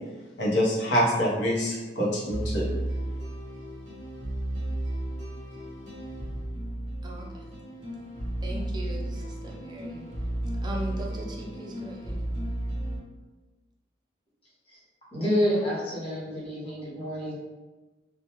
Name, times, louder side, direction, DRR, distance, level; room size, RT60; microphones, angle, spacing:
voice 1, 0.4-2.7, equal, 80° left, -5 dB, 0.8 m, -25 dB
sound 1, 2.3-13.0, right 1 dB, 45° right, 0.8 m, -33 dB
voice 2, 7.0-7.5 8.4-10.0 10.6-12.2, right 1 dB, 25° right, -1 dB, 0.4 m, -39 dB
voice 3, 15.1-17.3, equal, 35° left, -7 dB, 1.0 m, -28 dB
2.3 x 2.2 x 2.9 m, 1.2 s
head